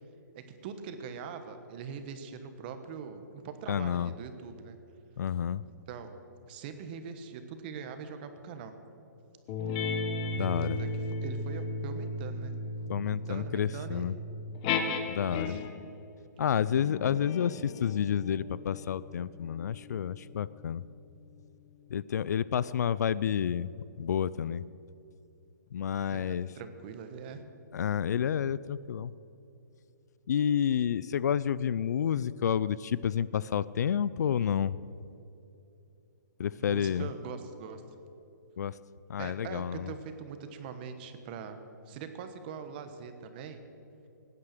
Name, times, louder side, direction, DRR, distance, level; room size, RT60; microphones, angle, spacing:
voice 1, 0.3-4.8 5.9-6.2 6.5-8.7 10.4-12.5 13.1-14.1 15.3-15.6 26.1-27.4 36.6-37.8 39.2-41.6 41.9-43.6, right 6 dB, 30° right, 8 dB, 1.2 m, -42 dB
voice 2, 3.7-4.1 5.2-5.6 10.3-10.8 12.9-14.1 15.1-15.6 16.4-20.8 21.9-23.7 24.0-24.6 25.7-26.5 27.7-29.1 30.3-34.8 36.4-37.1 38.6-38.7 39.1-39.9, left 8 dB, 65° left, 19 dB, 0.4 m, -30 dB
sound 1, 9.5-15.9 16.6-21.6, left 3 dB, 25° left, 1.1 m, -36 dB
18.5 x 9.8 x 6.7 m, 2.8 s
hypercardioid pair, 160°, 10 cm